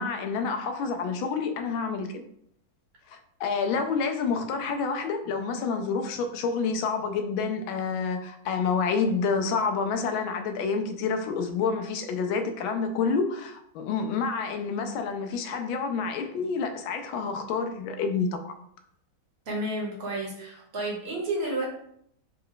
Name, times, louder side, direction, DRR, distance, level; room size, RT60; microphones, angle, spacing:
voice 1, 0.0-2.2 3.1-18.4, left 5 dB, 85° left, 6 dB, 1.4 m, -28 dB
voice 2, 19.5-21.6, right 1 dB, 40° right, -4 dB, 1.2 m, -31 dB
4.2 x 2.3 x 3.7 m, 0.70 s
omnidirectional pair, 2.1 m